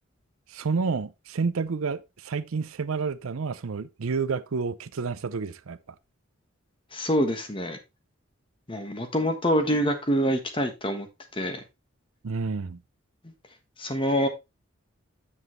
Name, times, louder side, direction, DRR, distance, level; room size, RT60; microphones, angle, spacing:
voice 1, 0.5-5.8 12.2-12.8, right 4 dB, 85° right, 0.6 m, -29 dB
voice 2, 6.9-7.8 8.7-11.1 11.3-11.6 13.2-13.3 13.8-14.3, equal, 25° left, 1.3 m, -26 dB
8.2 x 7.2 x 3.1 m
head